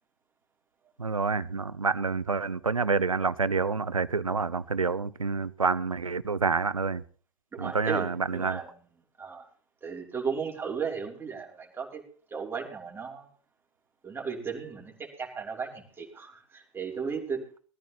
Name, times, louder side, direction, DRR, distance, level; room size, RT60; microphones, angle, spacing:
voice 1, 1.0-7.0 7.6-8.6, right 4 dB, 80° right, 18 dB, 0.8 m, -28 dB
voice 2, 7.5-8.7 9.2-9.5 9.8-12.0 12.3-13.3 14.0-17.5, right 6 dB, 15° right, 1 dB, 3.0 m, -35 dB
21.0 x 14.0 x 2.9 m, 0.42 s
figure-of-eight pair, 95°, 17 cm